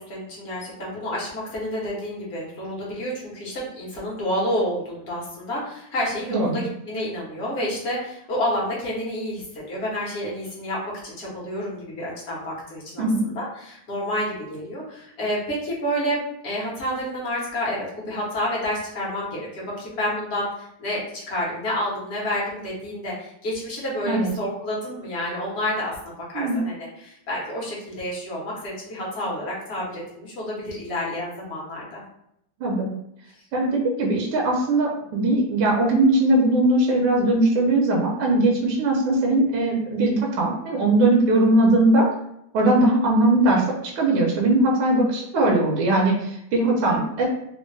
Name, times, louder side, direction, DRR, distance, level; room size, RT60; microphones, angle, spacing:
voice 1, 0.0-32.0 46.9-47.0, equal, 50° left, -5 dB, 0.8 m, -29 dB
voice 2, 6.3-6.6 13.0-13.2 24.1-24.3 26.3-26.6 32.6-32.9 33.5-42.0 42.5-47.3, right 2 dB, 75° right, -1 dB, 1.4 m, -20 dB
3.5 x 2.1 x 3.1 m, 0.77 s
omnidirectional pair, 2.4 m